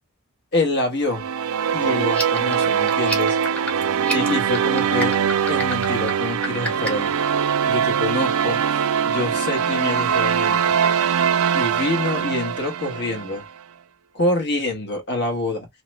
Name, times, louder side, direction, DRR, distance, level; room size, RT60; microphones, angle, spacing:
voice 1, 0.5-1.2 1.7-3.4 3.8-5.1 5.5-7.1 7.7-10.7 11.5-13.4 14.1-15.7, left 2 dB, 50° left, 1.2 m, -26 dB
sound 1, 1.1-13.4, right 7 dB, 65° right, 0.3 m, -22 dB
sound 2, 2.1-7.1, right 1 dB, 5° left, 0.7 m, -30 dB
2.9 x 2.1 x 3.1 m
head